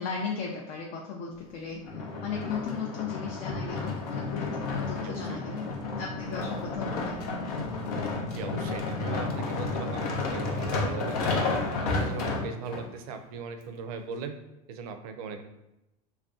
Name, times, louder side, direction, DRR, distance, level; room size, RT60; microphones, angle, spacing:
voice 1, 0.0-1.8 2.2-5.7 6.0-7.1, left 5 dB, 40° left, -1 dB, 0.4 m, -36 dB
sound 1, 1.8-12.8 13.5-13.6, left 3 dB, 75° left, 0.7 m, -31 dB
voice 2, 5.0-5.4 8.3-11.6 12.0-14.4 14.7-15.4, right 5 dB, 70° right, 7 dB, 0.4 m, -39 dB
2.4 x 2.2 x 3.6 m, 0.92 s
supercardioid pair, 140°, 19 cm